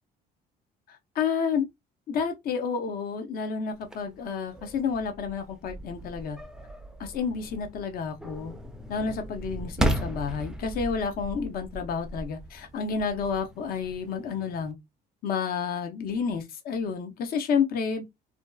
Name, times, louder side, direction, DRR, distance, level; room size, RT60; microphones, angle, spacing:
voice 1, 0.9-1.7 2.1-6.4 7.0-8.5 8.9-14.8 15.2-18.0, left 6 dB, 60° left, 0.6 m, -30 dB
sound 1, 3.7-14.7, right 1 dB, 5° right, 0.4 m, -36 dB
2.6 x 2.2 x 2.3 m
cardioid pair, 110°, 17 cm